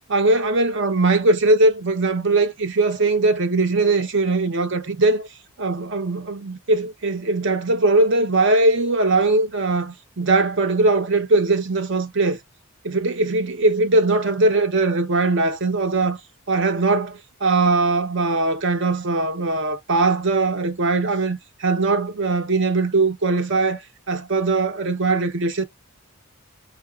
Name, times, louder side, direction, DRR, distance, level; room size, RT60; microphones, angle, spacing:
voice 1, 0.1-5.3 5.6-12.4 12.8-16.2 16.5-23.8 24.1-25.6, right 3 dB, 55° right, 0.7 m, -20 dB
4.7 x 2.3 x 2.3 m
head